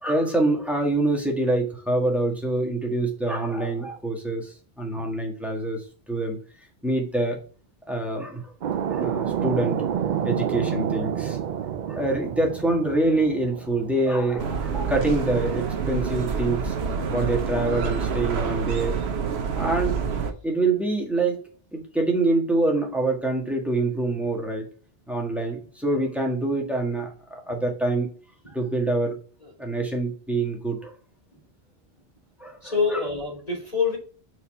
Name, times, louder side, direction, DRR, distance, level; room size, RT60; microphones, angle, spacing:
voice 1, 0.0-6.4 6.8-7.4 7.9-8.4 8.9-9.8 10.2-11.4 11.9-16.7 17.1-19.0 19.5-20.0 20.4-21.4 21.7-24.7 25.1-28.1 28.5-29.2 29.6-30.9 32.4-33.0, right 2 dB, ahead, 0 dB, 1.5 m, -25 dB
sound 1, 8.6-15.0, right 8 dB, 55° right, 0.5 m, -29 dB
sound 2, 14.4-20.3, right 6 dB, 75° right, 1.1 m, -27 dB
voice 2, 32.6-34.0, left 5 dB, 35° left, -3 dB, 3.1 m, -26 dB
5.5 x 4.7 x 4.3 m, 0.40 s
omnidirectional pair, 1.1 m